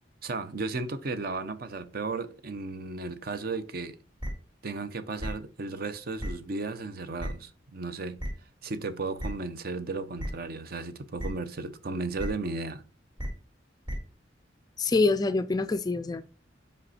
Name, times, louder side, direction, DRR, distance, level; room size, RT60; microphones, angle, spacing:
voice 1, 0.2-4.0 4.6-8.2 8.6-12.8, right 3 dB, 50° right, 0.6 m, -34 dB
sound 1, 4.2-4.3 5.2-5.3 6.2-6.3 7.2-7.3 8.2-8.3 9.2-9.3 10.2-10.3 11.2-11.3 12.2-12.3 13.2-13.3 13.9-14.0, equal, 25° right, 2.1 m, -32 dB
voice 2, 14.8-16.2, left 3 dB, 20° left, 0.3 m, -25 dB
5.2 x 5.2 x 4.2 m
head